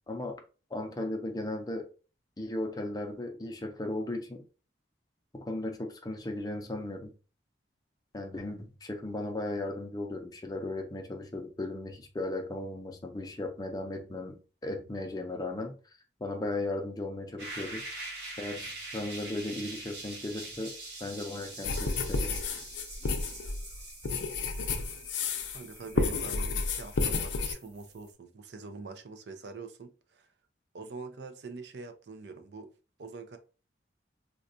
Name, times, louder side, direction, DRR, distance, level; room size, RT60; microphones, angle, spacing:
voice 1, 0.1-0.4 0.7-1.9 2.4-4.4 5.3-7.1 8.1-15.8 16.2-17.8 18.4-20.7 21.0-22.4, left 2 dB, 20° left, 0.4 m, -36 dB
sound 1, 17.4-28.1, right 2 dB, 90° right, 1.7 m, -44 dB
sound 2, 21.6-25.6 25.9-27.5, left 4 dB, 85° left, 0.5 m, -31 dB
voice 2, 25.5-30.3 30.7-32.7 33.0-33.4, right 4 dB, 70° right, 0.5 m, -44 dB
3.8 x 2.2 x 2.6 m
head